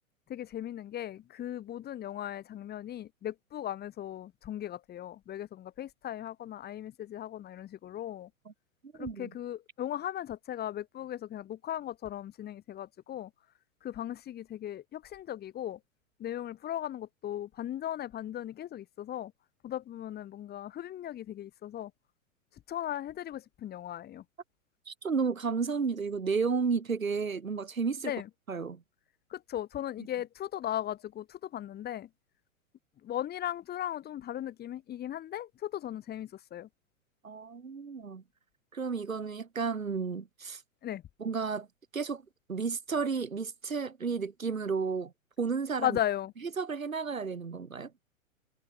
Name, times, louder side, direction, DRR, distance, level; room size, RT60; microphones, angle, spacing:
voice 1, 0.3-8.3 8.9-13.3 13.8-15.8 16.2-19.3 19.6-21.9 22.7-24.2 28.0-28.3 29.3-32.1 33.0-36.7 40.8-41.0 45.8-46.3, left 11 dB, 25° left, 6.6 m, -37 dB
voice 2, 9.0-9.3 24.9-28.1 28.5-28.8 37.2-38.2 38.7-40.6 41.2-41.7 41.9-42.2 42.5-45.1 45.4-45.9 46.6-47.9, right 5 dB, 75° right, 4.8 m, -32 dB
figure-of-eight pair, 105°, 41 cm